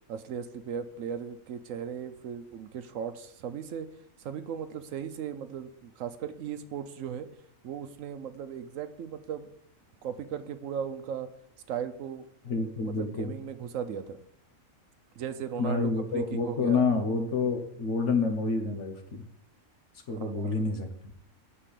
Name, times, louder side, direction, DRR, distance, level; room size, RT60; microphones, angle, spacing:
voice 1, 0.1-3.9 4.2-7.3 7.6-9.5 10.0-11.3 11.7-12.6 12.8-14.2 15.2-16.9 20.1-20.6, right 8 dB, 75° right, 10 dB, 1.0 m, -37 dB
voice 2, 12.4-13.3 15.6-19.2 20.1-20.9, left 4 dB, 60° left, 5 dB, 1.4 m, -28 dB
7.4 x 4.5 x 6.7 m, 0.69 s
omnidirectional pair, 1.4 m